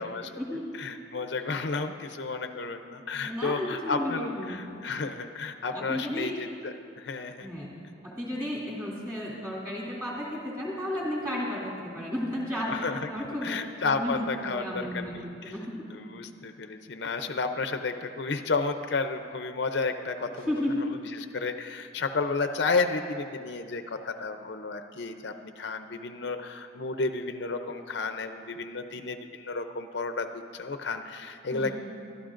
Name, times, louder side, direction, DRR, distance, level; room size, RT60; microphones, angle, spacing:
voice 1, 0.0-7.5 12.7-15.3 15.9-20.5 20.8-31.7, left 4 dB, 65° left, 7 dB, 0.6 m, -32 dB
voice 2, 3.2-4.6 5.7-6.3 7.4-7.7 8.0-13.6 13.8-15.8 20.5-20.8 31.5-31.7, left 1 dB, 15° right, -6 dB, 2.5 m, -33 dB
24.0 x 12.0 x 2.5 m, 2.4 s
head